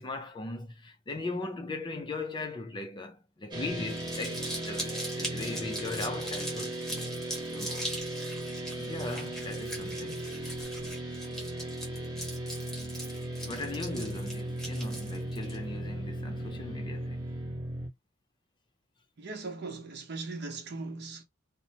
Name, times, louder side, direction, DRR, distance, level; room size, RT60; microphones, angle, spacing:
voice 1, 0.0-6.8 7.4-7.9 8.8-10.2 13.4-17.3, left 2 dB, 20° left, 0.4 m, -38 dB
sound 1, 3.5-17.9, right 1 dB, 20° right, 0.9 m, -37 dB
Crumpling crinkling, 3.8-15.6, right 1 dB, 5° left, 1.0 m, -40 dB
voice 2, 19.2-21.2, right 3 dB, 50° right, 0.8 m, -39 dB
2.7 x 2.1 x 2.8 m
head